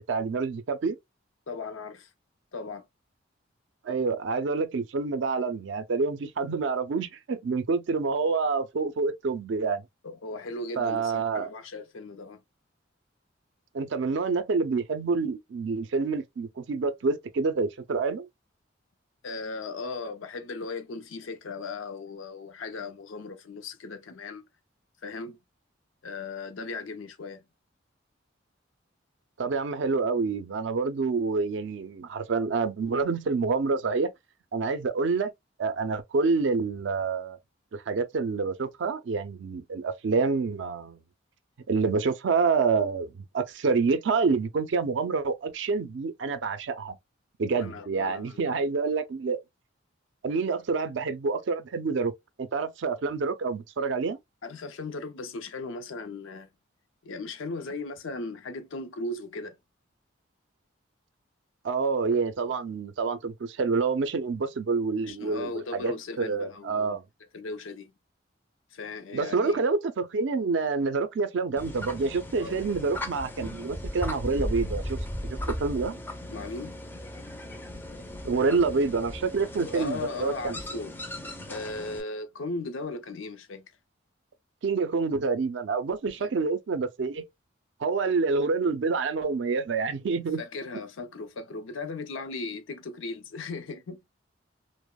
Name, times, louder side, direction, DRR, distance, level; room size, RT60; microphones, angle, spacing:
voice 1, 0.1-1.0 3.8-9.8 10.8-11.5 13.7-18.3 29.4-34.1 34.5-35.3 35.6-37.4 37.7-41.0 41.7-47.0 47.4-49.4 50.2-52.1 52.4-54.2 61.6-67.0 69.1-75.9 78.2-80.5 84.6-87.2 87.8-90.4, right 4 dB, 65° right, 0.4 m, -27 dB
voice 2, 1.5-2.1 2.5-2.8 10.0-12.4 19.2-24.4 25.0-25.4 26.0-27.4 47.5-48.4 54.4-56.5 57.0-59.6 65.1-67.0 67.3-67.9 68.7-69.6 72.4-72.6 76.3-76.8 79.6-80.9 81.5-83.7 86.2-86.3 90.4-94.0, left 3 dB, 85° left, 0.5 m, -37 dB
sound 1, 71.6-82.0, left 1 dB, 10° left, 0.4 m, -37 dB
2.8 x 2.0 x 2.2 m
head